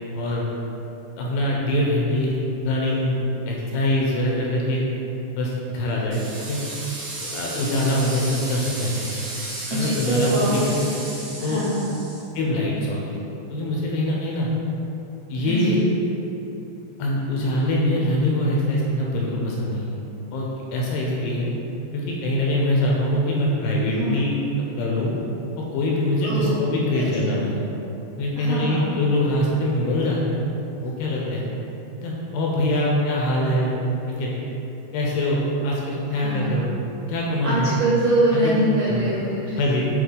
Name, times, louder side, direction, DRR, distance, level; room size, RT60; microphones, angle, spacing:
voice 1, 0.1-0.5 1.2-2.3 2.6-3.2 3.5-4.8 5.4-6.6 7.3-9.1 9.7-10.8 11.4-11.6 12.4-13.2 13.5-14.5 15.3-15.8 17.0-19.9 20.3-21.5 21.9-24.4 24.8-25.1 25.7-27.6 28.2-30.5 30.8-31.5 32.0-33.8 34.1-34.3 34.9-36.7 37.1-37.7 38.3-38.5 38.9-39.0 39.6-39.9, left 1 dB, 85° left, -3 dB, 2.6 m, -23 dB
sound 1, 6.1-12.2, right 2 dB, 65° right, 2.7 m, -34 dB
voice 2, 9.7-10.8 11.4-11.9 15.5-16.1 23.9-24.2 26.2-26.5 27.0-27.5 28.4-29.0 36.2-36.6 37.4-39.6, right 1 dB, 85° right, -10 dB, 1.9 m, -24 dB
7.9 x 3.1 x 3.8 m, 3.0 s
omnidirectional pair, 5.0 m